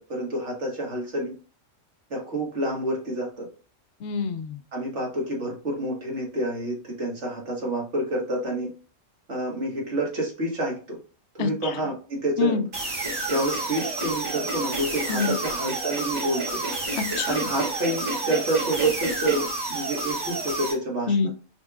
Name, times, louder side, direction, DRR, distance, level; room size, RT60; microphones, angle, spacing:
voice 1, 0.1-1.3 2.1-3.5 4.7-8.7 9.3-11.0 11.4-12.6 13.3-16.6 17.3-21.1, right 1 dB, 60° right, -2 dB, 1.8 m, -28 dB
voice 2, 4.0-4.6 11.4-11.8 12.4-12.7 15.1-15.4 17.0-17.5 21.1-21.3, left 6 dB, 65° left, 10 dB, 0.8 m, -26 dB
sound 1, 12.7-20.7, right 2 dB, 85° right, 2.6 m, -30 dB
sound 2, 13.0-19.4, right 2 dB, 35° right, 0.5 m, -34 dB
5.4 x 3.4 x 2.3 m, 0.36 s
omnidirectional pair, 1.3 m